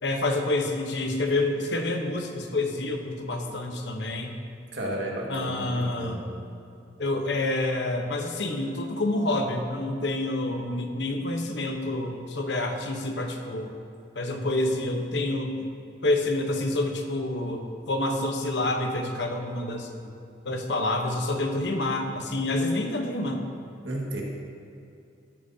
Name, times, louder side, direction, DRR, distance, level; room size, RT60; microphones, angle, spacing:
voice 1, 0.0-4.3 5.3-6.2 7.0-13.7 14.2-15.6 16.0-20.1 20.4-23.4, left 2 dB, 70° left, 4 dB, 1.0 m, -28 dB
voice 2, 4.7-6.3 23.8-24.2, right 1 dB, 75° right, -2 dB, 1.8 m, -33 dB
13.5 x 9.9 x 2.8 m, 2.6 s
head